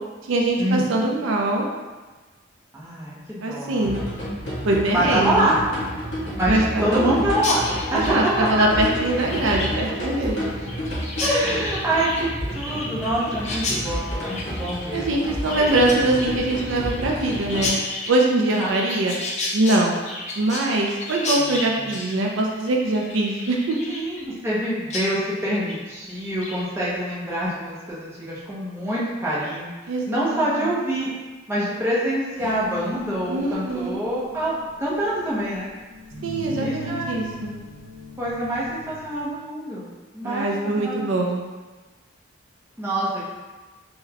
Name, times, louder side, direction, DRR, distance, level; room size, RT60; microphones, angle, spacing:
voice 1, 0.2-1.7 3.4-4.0 4.6-5.5 6.5-7.2 7.9-10.5 14.9-17.7 18.1-19.2 19.5-20.0 20.4-23.8 29.9-30.7 33.3-33.9 36.2-37.6 40.2-41.4, right 2 dB, 70° right, 0 dB, 0.4 m, -23 dB
voice 2, 2.7-3.9 4.9-5.6 6.4-7.6 7.9-8.3 11.2-12.3 12.5-15.1 15.6-15.7 18.5-18.8 21.4-21.9 23.9-31.1 31.5-35.7 36.6-37.2 38.2-39.9 40.1-41.1 42.8-43.2, right 1 dB, 10° right, -8 dB, 0.6 m, -26 dB
sound 1, 3.8-17.7, equal, 55° left, 1.2 m, -30 dB
Chirp tweet, 7.4-24.6 24.9-25.1 25.4-25.8 26.2-26.6, left 2 dB, 35° left, 0.3 m, -32 dB
sound 2, 32.4-39.3, left 2 dB, 45° right, 0.7 m, -39 dB
3.8 x 2.1 x 2.8 m, 1.3 s
head